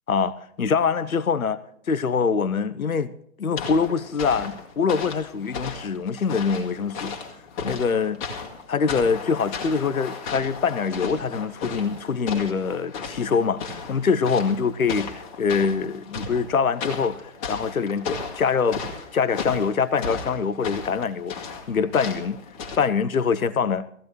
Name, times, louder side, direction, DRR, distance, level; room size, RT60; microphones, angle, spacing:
voice 1, 0.1-1.6 1.9-3.1 3.4-7.1 7.6-8.2 8.7-18.8 19.1-22.4 22.8-23.9, left 5 dB, 70° left, 0.9 m, -24 dB
sound 1, 3.6-22.8, left 5 dB, 25° left, 2.1 m, -35 dB
18.0 x 15.0 x 3.1 m
figure-of-eight pair, 135°, 43 cm